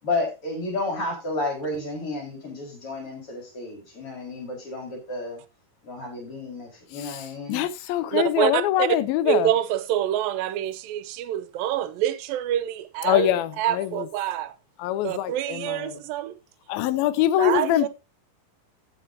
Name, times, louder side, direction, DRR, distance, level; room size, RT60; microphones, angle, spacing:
voice 1, 0.0-5.4 5.8-7.6, left 2 dB, 35° left, 5.6 m, -31 dB
voice 2, 7.0-9.5 13.0-14.1 14.8-16.0 16.7-17.9, left 12 dB, 80° left, 2.5 m, -24 dB
voice 3, 8.1-8.9 9.3-13.3 13.6-14.5 15.0-16.4 17.4-17.9, right 12 dB, 75° right, 2.4 m, -26 dB
15.0 x 7.7 x 2.8 m
omnidirectional pair, 4.4 m